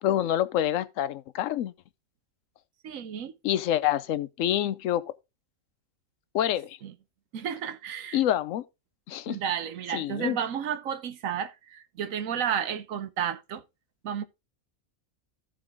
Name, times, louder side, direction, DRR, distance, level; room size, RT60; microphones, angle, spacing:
voice 1, 0.0-1.7 3.4-5.0 6.3-6.8 8.1-8.6 9.1-9.4 9.9-10.4, left 11 dB, 70° left, 1.0 m, -27 dB
voice 2, 2.8-3.3 6.8-6.9 7.3-8.2 9.3-13.6 14.0-14.2, right 8 dB, 70° right, 1.2 m, -32 dB
14.0 x 5.0 x 3.6 m
omnidirectional pair, 1.5 m